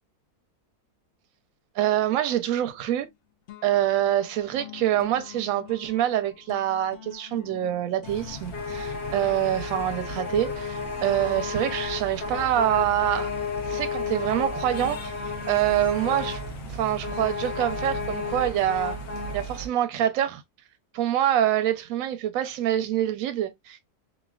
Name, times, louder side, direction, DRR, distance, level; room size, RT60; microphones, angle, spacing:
voice 1, 1.8-3.1 3.6-13.3 13.7-15.1 15.5-16.4 16.7-19.0 19.3-20.4 20.9-23.8, right 11 dB, 70° right, 0.9 m, -25 dB
sound 1, 2.7-3.2 3.5-16.9, left 11 dB, 70° left, 0.7 m, -47 dB
sound 2, 8.0-19.7, left 3 dB, 50° left, 1.0 m, -32 dB
3.1 x 2.6 x 2.2 m
omnidirectional pair, 1.6 m